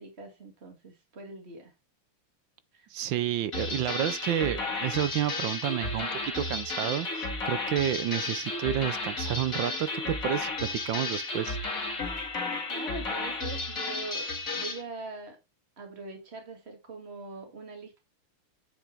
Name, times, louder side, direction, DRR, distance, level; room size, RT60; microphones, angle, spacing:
voice 1, 0.0-1.7 2.7-2.9 12.7-15.4 15.8-18.0, right 3 dB, 30° right, 2.6 m, -42 dB
voice 2, 2.9-11.6, right 11 dB, 70° right, 1.3 m, -30 dB
sound 1, 3.5-14.8, left 3 dB, 40° left, 2.4 m, -33 dB
9.0 x 7.2 x 3.5 m
omnidirectional pair, 2.4 m